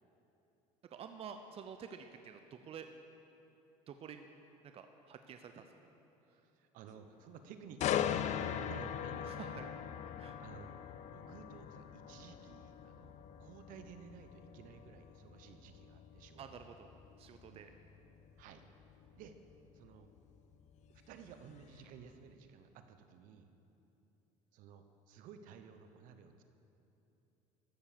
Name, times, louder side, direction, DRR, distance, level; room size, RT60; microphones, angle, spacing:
voice 1, 0.9-2.9 3.9-4.3 4.6-5.6 9.2-9.8 10.2-10.4 16.4-16.9 17.2-17.7, right 7 dB, 40° right, 7 dB, 0.6 m, -49 dB
voice 2, 6.6-9.6 10.4-10.7 11.1-16.7 17.5-17.7 18.4-18.6 19.1-19.4 19.7-20.1 21.1-23.5 24.5-26.4, right 7 dB, 70° right, 8 dB, 0.9 m, -55 dB
sound 1, 7.8-21.6 22.1-22.3, left 9 dB, 50° left, 0.5 m, -41 dB
13.5 x 7.0 x 6.9 m, 3.0 s
supercardioid pair, 95°, 15 cm